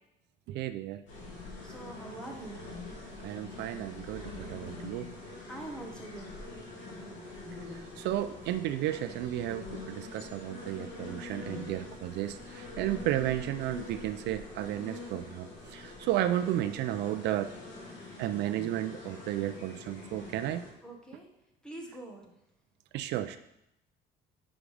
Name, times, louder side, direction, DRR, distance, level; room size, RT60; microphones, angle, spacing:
voice 1, 0.5-1.0 3.2-5.1 7.7-17.5 18.2-20.6 22.9-23.4, right 13 dB, 70° right, 11 dB, 0.4 m, -33 dB
sound 1, 1.1-20.7, left 3 dB, 80° left, 2.9 m, -45 dB
voice 2, 1.6-2.6 5.5-6.3 20.8-21.3 21.6-22.2, right 2 dB, 5° left, 0 dB, 1.3 m, -44 dB
10.0 x 4.9 x 3.3 m, 0.83 s
cardioid pair, 150°, 18 cm